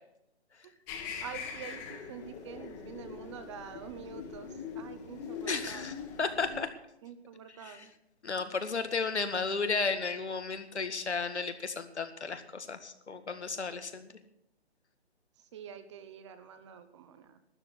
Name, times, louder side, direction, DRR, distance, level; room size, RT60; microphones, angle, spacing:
sound 1, 0.9-6.6, left 6 dB, 20° left, 1.5 m, -42 dB
voice 1, 1.2-5.9 7.0-7.9 15.5-17.4, right 8 dB, 25° right, 11 dB, 1.0 m, -46 dB
voice 2, 5.5-6.7 7.6-7.8 8.2-14.1, left 4 dB, 85° left, 8 dB, 1.9 m, -33 dB
12.5 x 9.7 x 8.3 m, 0.82 s
hypercardioid pair, 155°, 33 cm